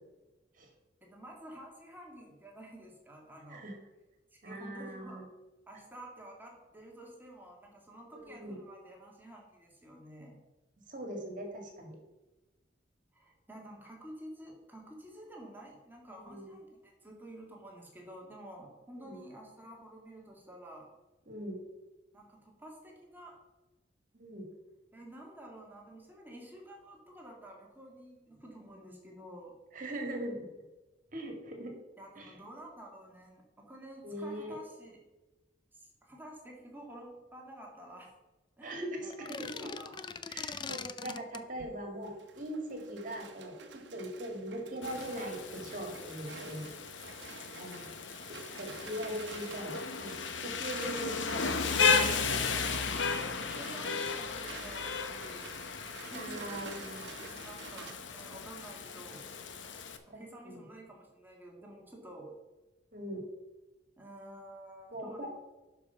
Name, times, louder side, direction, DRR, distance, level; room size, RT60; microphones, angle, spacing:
voice 1, 1.0-3.7 4.3-5.3 5.7-10.4 13.1-20.9 22.1-23.4 24.9-29.6 32.0-35.0 35.7-38.1 38.6-40.0 50.9-51.3 53.3-55.5 56.1-56.7 57.4-59.2 60.1-62.3 64.0-65.3, right 1 dB, 10° right, -1 dB, 2.0 m, -50 dB
voice 2, 4.4-5.3 8.1-8.6 10.9-12.0 16.3-16.6 19.0-19.2 21.3-21.6 24.1-24.5 29.7-30.5 31.1-31.7 32.2-32.3 34.0-34.6 38.6-39.7 40.3-46.7 47.6-48.0 48.3-51.4 51.8-52.2 56.1-57.1 60.1-60.6 62.9-63.2 64.9-65.3, right 1 dB, 45° right, 3 dB, 2.0 m, -41 dB
sound 1, 39.1-41.5, left 5 dB, 25° left, 0.4 m, -41 dB
sound 2, 41.3-57.9, right 5 dB, 70° right, 1.1 m, -50 dB
Rain, 44.8-60.0, left 5 dB, 85° left, 0.9 m, -35 dB
11.5 x 5.2 x 5.6 m, 1.1 s
head